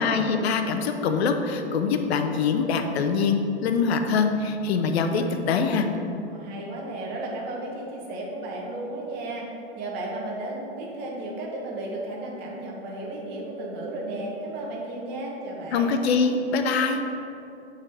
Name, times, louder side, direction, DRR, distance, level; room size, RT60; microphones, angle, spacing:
voice 1, 0.0-5.9 15.7-17.0, left 5 dB, 70° left, 6 dB, 0.7 m, -24 dB
voice 2, 6.2-9.5 9.8-15.9, right 2 dB, 30° right, -2 dB, 1.1 m, -34 dB
8.1 x 3.8 x 3.5 m, 2.8 s
hypercardioid pair, 130°, 33 cm